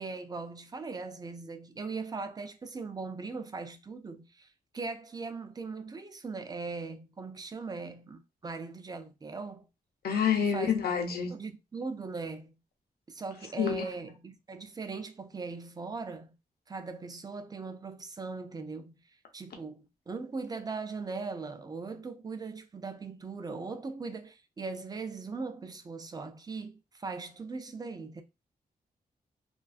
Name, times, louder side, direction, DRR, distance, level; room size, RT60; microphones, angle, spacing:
voice 1, 0.0-4.5 4.7-9.7 10.4-10.7 11.3-12.6 13.1-16.3 16.7-18.9 19.3-28.2, right 4 dB, 25° right, 0.4 m, -39 dB
voice 2, 10.0-11.3 13.6-13.8, left 7 dB, 90° left, 0.6 m, -27 dB
2.3 x 2.3 x 2.4 m
wide cardioid pair, 95°, 16 cm